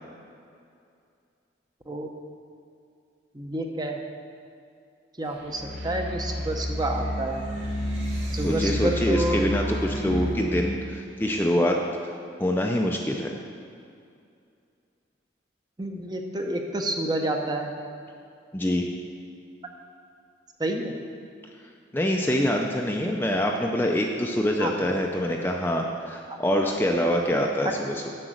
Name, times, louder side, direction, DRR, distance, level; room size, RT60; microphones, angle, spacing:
voice 1, 3.3-4.0 5.2-7.4 8.3-9.4 15.8-17.7 20.6-20.9 24.6-24.7, right 1 dB, 20° right, 3 dB, 0.7 m, -29 dB
sound 1, 5.4-10.4, equal, 75° right, 2.4 m, -30 dB
voice 2, 8.4-11.8 12.4-13.3 18.5-18.8 21.9-28.1, equal, 10° left, 1 dB, 0.5 m, -25 dB
7.9 x 6.0 x 7.6 m, 2.4 s
head